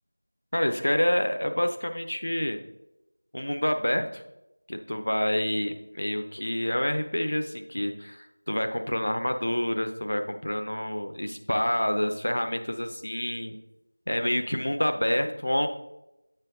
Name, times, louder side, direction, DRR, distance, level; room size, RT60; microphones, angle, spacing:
voice 1, 0.5-2.6 3.3-4.2 4.7-13.6 14.1-15.7, equal, 65° left, 6 dB, 0.6 m, -28 dB
7.7 x 5.3 x 3.6 m, 0.92 s
figure-of-eight pair, 175°, 0 cm